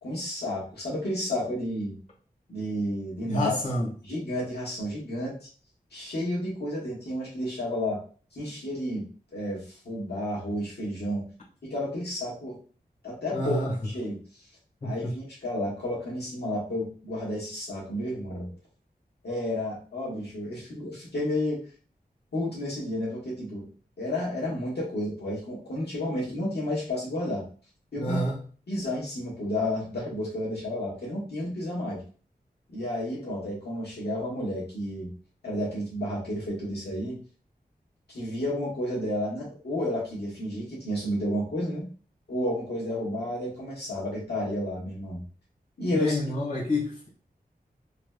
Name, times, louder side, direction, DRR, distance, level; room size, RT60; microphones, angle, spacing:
voice 1, 0.0-2.0 2.5-3.6 4.0-5.5 5.9-8.0 8.3-9.0 9.3-11.3 11.6-12.6 13.0-13.6 13.8-14.2 14.8-18.5 19.2-21.6 22.3-23.7 24.0-27.4 27.9-28.2 28.7-32.0 32.7-35.1 35.4-37.2 38.1-41.9 42.3-45.2 45.8-46.2, left 1 dB, 90° left, -6 dB, 1.5 m, -31 dB
voice 2, 3.2-3.9 13.3-13.7 14.8-15.1 28.0-28.4 45.9-47.1, left 1 dB, 45° left, -5 dB, 1.3 m, -28 dB
3.2 x 3.2 x 2.2 m, 0.39 s
wide cardioid pair, 90°, 17 cm